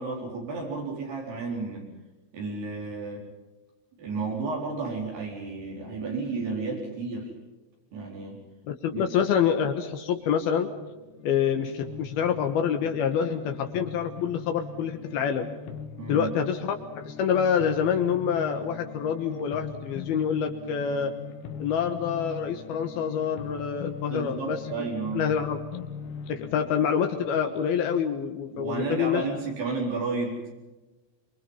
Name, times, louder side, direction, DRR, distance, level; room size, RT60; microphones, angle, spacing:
voice 1, 0.0-1.9 2.3-3.2 4.0-7.3 7.9-8.4 8.9-9.0 16.0-16.3 24.1-25.3 28.5-30.5, right 4 dB, 70° right, -2 dB, 6.3 m, -32 dB
voice 2, 8.7-10.7 11.2-15.5 16.1-21.1 21.6-24.6 25.1-25.6 26.3-29.2, left 7 dB, 70° left, 6 dB, 3.1 m, -26 dB
sound 1, 10.2-29.3, left 6 dB, 90° left, 3.7 m, -41 dB
26.0 x 24.5 x 5.6 m, 1.2 s
omnidirectional pair, 4.7 m